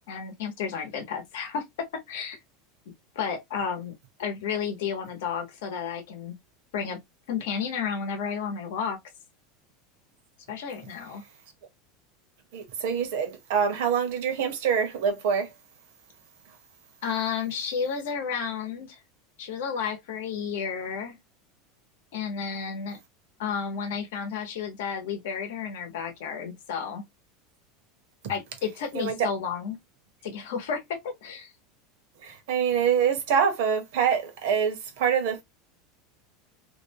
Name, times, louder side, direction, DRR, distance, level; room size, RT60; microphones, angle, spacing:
voice 1, 0.1-2.4 3.1-6.3 6.7-7.0 7.3-9.0 10.5-11.2 17.0-19.0 19.4-21.2 22.1-23.0 23.4-27.0 28.3-29.8 30.2-31.5, left 6 dB, 70° left, 0.8 m, -32 dB
voice 2, 12.5-15.5 28.9-29.3 32.2-35.4, right 7 dB, 60° right, 0.8 m, -25 dB
2.5 x 2.1 x 2.7 m
supercardioid pair, 180°, 0 cm